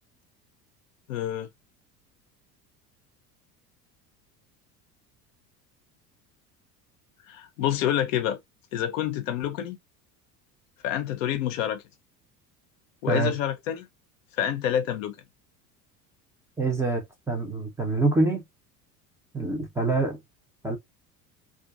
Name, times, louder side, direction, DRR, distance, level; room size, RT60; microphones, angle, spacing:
voice 1, 1.1-1.5 7.3-8.4 8.7-9.8 10.8-11.8 13.0-13.9 14.4-15.2, left 10 dB, 50° left, 0.6 m, -27 dB
voice 2, 16.6-18.4 19.3-20.2 20.6-20.8, right 3 dB, 5° right, 0.5 m, -25 dB
2.5 x 2.4 x 2.4 m
figure-of-eight pair, 70°, 49 cm